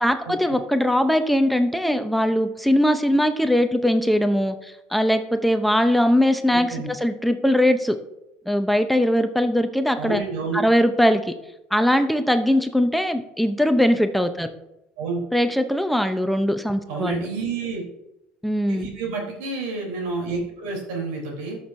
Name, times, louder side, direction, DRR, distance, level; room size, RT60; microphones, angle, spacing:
voice 1, 0.0-7.9 8.5-10.2 10.5-11.3 11.7-14.5 15.3-17.3 18.4-18.9, equal, ahead, 7 dB, 0.6 m, -21 dB
voice 2, 6.5-6.9 10.0-10.6 15.0-15.2 16.9-17.8 18.6-21.6, right 4 dB, 85° right, 0 dB, 3.4 m, -29 dB
13.5 x 6.3 x 2.6 m, 0.87 s
supercardioid pair, 115°, 4 cm